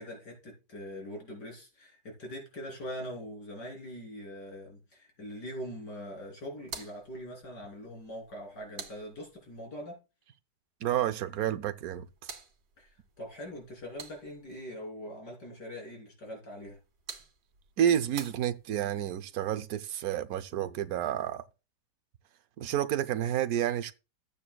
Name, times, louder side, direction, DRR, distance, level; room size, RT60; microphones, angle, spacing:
voice 1, 0.0-10.0 12.8-16.8, equal, 70° left, 3.9 m, -42 dB
sound 1, 6.6-9.7 11.7-14.6 16.6-19.0, right 6 dB, 90° right, 2.3 m, -49 dB
voice 2, 10.8-12.1 17.8-21.4 22.6-23.9, right 10 dB, 65° right, 1.0 m, -30 dB
14.0 x 8.7 x 2.3 m
omnidirectional pair, 1.9 m